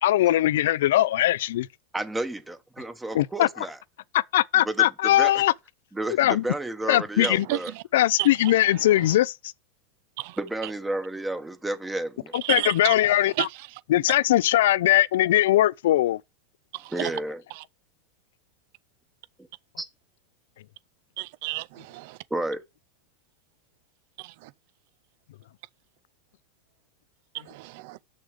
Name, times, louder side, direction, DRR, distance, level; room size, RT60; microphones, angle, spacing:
voice 1, 0.0-1.7 3.1-3.5 4.1-5.5 6.2-6.4 6.9-7.5 7.9-9.3 12.3-13.5 13.9-16.2, left 14 dB, 75° left, 0.4 m, -21 dB
voice 2, 1.9-3.8 4.5-5.3 5.9-7.7 10.4-12.3 16.9-17.4 19.8-19.9 22.3-22.6, right 2 dB, 10° right, 1.0 m, -31 dB
voice 3, 12.5-12.9 13.4-13.5 21.2-22.2 27.5-28.0, right 19 dB, 60° right, 0.4 m, -30 dB
6.4 x 6.3 x 5.0 m
supercardioid pair, 130°, 0 cm